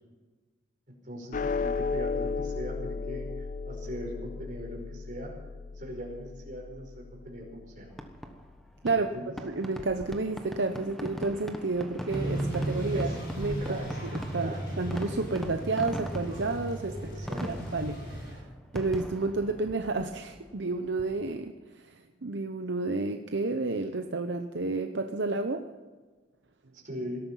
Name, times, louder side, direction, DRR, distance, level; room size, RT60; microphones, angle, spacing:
voice 1, 0.9-5.3 5.7-7.9 8.9-9.3 12.9-14.0 14.3-14.6 16.9-17.4 26.7-27.2, equal, 45° right, 0 dB, 5.1 m, -40 dB
sound 1, 1.3-7.9, left 4 dB, 45° left, 0.4 m, -35 dB
Fireworks, 7.9-21.5, equal, ahead, 1.2 m, -41 dB
voice 2, 9.4-13.1 13.4-17.0 17.4-18.4 18.7-25.6, right 3 dB, 70° right, 6 dB, 0.8 m, -31 dB
sound 2, 12.1-18.4, right 1 dB, 60° left, 5.8 m, -35 dB
18.5 x 13.0 x 5.6 m, 1.3 s
head